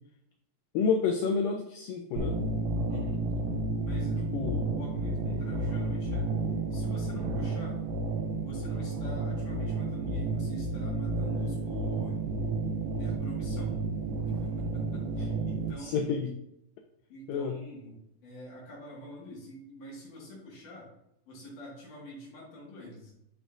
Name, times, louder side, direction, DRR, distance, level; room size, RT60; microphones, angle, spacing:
voice 1, 0.7-2.4 4.3-4.6 15.8-16.3 17.3-17.6, left 5 dB, 90° left, 5 dB, 1.9 m, -29 dB
sound 1, 2.2-15.7, right 3 dB, 90° right, 2.6 m, -31 dB
voice 2, 2.9-3.3 3.8-6.4 6.7-7.8 8.4-12.2 13.0-13.8 14.3-16.2 17.1-20.9 21.3-23.1, equal, 60° left, -4 dB, 3.1 m, -45 dB
11.0 x 5.1 x 2.5 m, 0.81 s
omnidirectional pair, 4.5 m